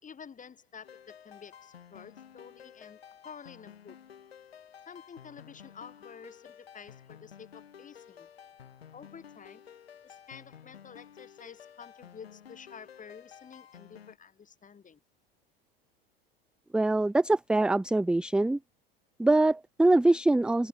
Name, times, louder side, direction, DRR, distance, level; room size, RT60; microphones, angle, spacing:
voice 1, 0.0-4.0 4.8-8.3 8.9-9.6 10.0-15.0, left 6 dB, 25° left, 5.1 m, -50 dB
sound 1, 0.8-14.2, left 8 dB, 85° left, 2.4 m, -52 dB
voice 2, 16.7-18.6 19.2-20.7, right 2 dB, 5° right, 0.4 m, -23 dB
hypercardioid pair, 80°, 30 cm